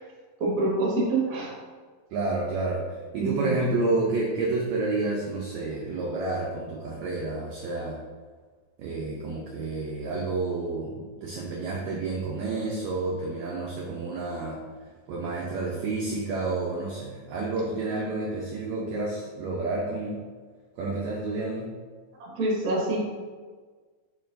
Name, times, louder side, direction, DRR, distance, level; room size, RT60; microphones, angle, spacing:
voice 1, 0.4-1.5 3.2-3.5 22.2-23.0, right 2 dB, 45° right, -4 dB, 1.3 m, -26 dB
voice 2, 2.1-2.8 3.1-8.0 8.8-14.6 15.1-20.2 20.8-21.7, right 3 dB, 80° right, -3 dB, 1.6 m, -29 dB
7.9 x 4.6 x 2.6 m, 1.5 s
omnidirectional pair, 4.0 m